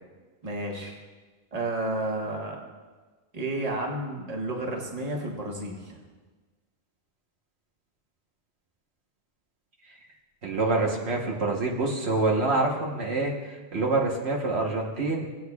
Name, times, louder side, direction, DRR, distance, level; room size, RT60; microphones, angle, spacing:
voice 1, 0.4-1.0 1.5-2.6 3.3-6.0, right 2 dB, 35° right, 0 dB, 1.3 m, -31 dB
voice 2, 10.4-13.3 13.7-15.3, right 3 dB, 75° right, -1 dB, 1.4 m, -26 dB
19.0 x 8.2 x 2.3 m, 1.3 s
omnidirectional pair, 1.1 m